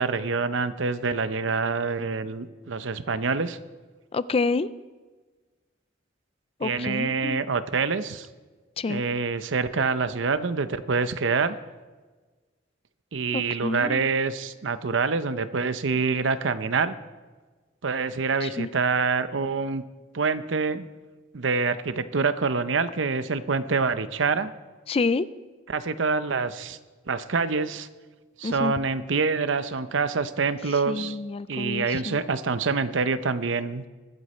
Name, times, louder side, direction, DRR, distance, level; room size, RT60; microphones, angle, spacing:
voice 1, 0.0-3.6 6.6-8.3 8.9-11.6 13.1-16.9 17.8-19.8 20.1-20.9 21.3-24.5 25.7-26.8 27.1-27.9 28.4-31.2 31.5-33.8, right 4 dB, 75° right, 12 dB, 0.7 m, -26 dB
voice 2, 4.1-4.7 6.6-7.5 8.8-9.0 13.3-14.1 18.4-18.7 24.9-25.3 28.4-28.7 30.9-32.2, left 3 dB, 30° left, 16 dB, 0.4 m, -28 dB
22.5 x 8.0 x 4.3 m, 1.3 s
head